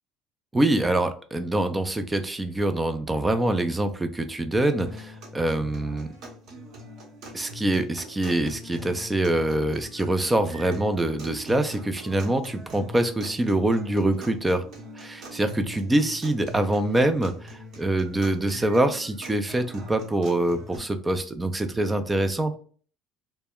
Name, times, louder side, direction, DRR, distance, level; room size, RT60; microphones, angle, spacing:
voice 1, 0.5-6.1 7.3-14.6 15.0-22.6, right 1 dB, 15° right, 9 dB, 0.4 m, -25 dB
sound 1, 4.8-20.8, left 1 dB, 60° right, 0.9 m, -42 dB
2.1 x 2.1 x 3.5 m, 0.43 s
supercardioid pair, 80°, 0 cm